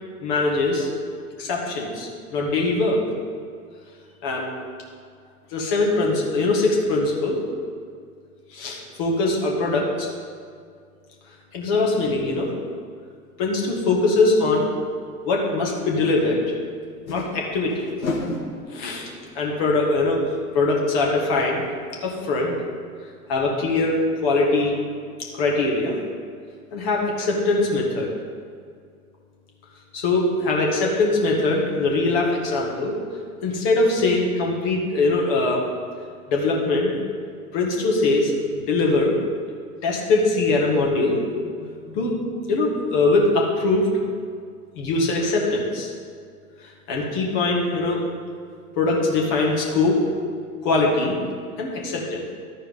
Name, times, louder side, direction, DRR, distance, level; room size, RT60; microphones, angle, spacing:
voice 1, 0.2-0.9 1.4-3.0 4.2-4.5 5.5-7.4 8.5-10.1 11.5-12.5 13.4-14.7 15.3-16.4 17.1-17.8 18.7-19.1 19.3-21.6 22.0-22.5 23.3-24.8 25.3-26.0 26.7-28.1 29.9-32.9 33.4-35.6 36.3-36.9 37.5-39.1 39.8-42.2 42.5-43.9 44.8-45.9 46.9-48.0 48.7-50.0 50.6-51.2 51.6-52.3, left 2 dB, 45° left, -2 dB, 2.0 m, -22 dB
sound 1, 15.5-15.6 16.9-21.4 21.7-21.8 22.1-22.2, left 2 dB, 65° left, 1.3 m, -34 dB
12.5 x 4.4 x 5.4 m, 2.2 s
figure-of-eight pair, 85°, 45 cm